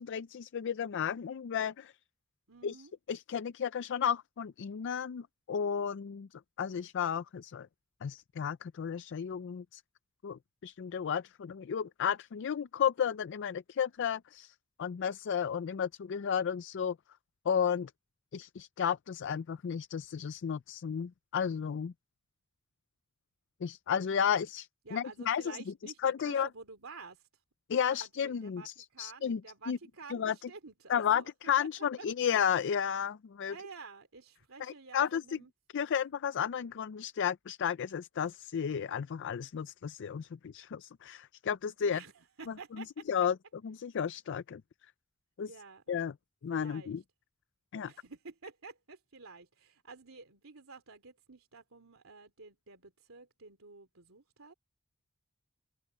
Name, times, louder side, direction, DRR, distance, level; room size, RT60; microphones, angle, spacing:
voice 1, 0.0-1.9 2.6-2.8 3.1-6.3 6.6-7.7 8.0-9.8 10.2-14.5 14.8-17.0 17.5-17.9 18.3-21.9 23.6-25.6 26.0-26.5 27.7-29.4 29.7-29.8 30.1-30.3 30.9-33.5 34.6-35.2 35.7-42.0 43.1-43.4 43.6-44.6 45.4-45.5 45.9-46.1 46.4-47.0 47.7-47.9, left 8 dB, 60° left, 0.4 m, -33 dB
voice 2, 2.5-2.9 24.8-27.3 27.9-31.5 32.0-32.1 33.5-35.5 41.8-43.3 45.5-45.8 46.5-47.0 47.8-54.5, right 4 dB, 85° right, 2.9 m, -51 dB
open air
head